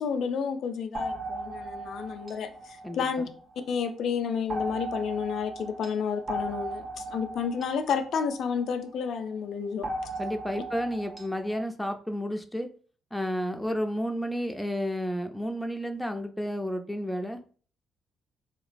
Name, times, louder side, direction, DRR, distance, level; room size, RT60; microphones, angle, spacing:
voice 1, 0.0-3.3 3.7-9.9, left 6 dB, 70° left, 7 dB, 0.4 m, -31 dB
sound 1, 0.9-3.7 4.5-9.0 9.8-11.6, right 1 dB, 40° right, 0.8 m, -37 dB
voice 2, 2.8-3.3 10.2-12.7 13.1-17.4, equal, 5° left, 5 dB, 0.4 m, -31 dB
3.6 x 2.9 x 2.5 m, 0.41 s
cardioid pair, 90°, 0 cm